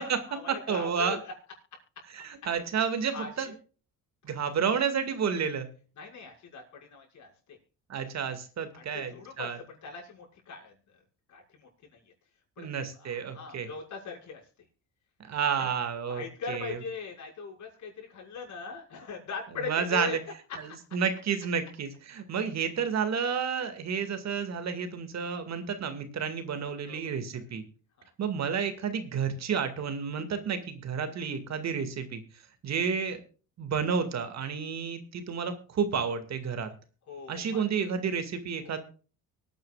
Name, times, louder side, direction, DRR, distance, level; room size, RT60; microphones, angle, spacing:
voice 1, 0.0-1.3 3.1-3.5 4.4-4.5 6.0-7.6 8.7-10.7 11.3-12.1 12.6-12.7 13.0-14.4 15.6-15.7 16.1-20.2 20.5-20.6 26.8-27.1 28.0-28.1 37.1-37.6 38.6-38.7, left 5 dB, 60° left, -1 dB, 6.2 m, -40 dB
voice 2, 0.7-1.2 2.1-3.5 4.2-5.7 7.9-9.6 12.6-13.7 15.3-16.8 19.6-20.2 20.6-27.6 28.2-32.2 32.6-33.2 33.6-36.7 37.3-38.8, right 6 dB, 55° right, 8 dB, 2.2 m, -31 dB
24.0 x 9.2 x 2.4 m, 0.37 s
cardioid pair, 95°, 32 cm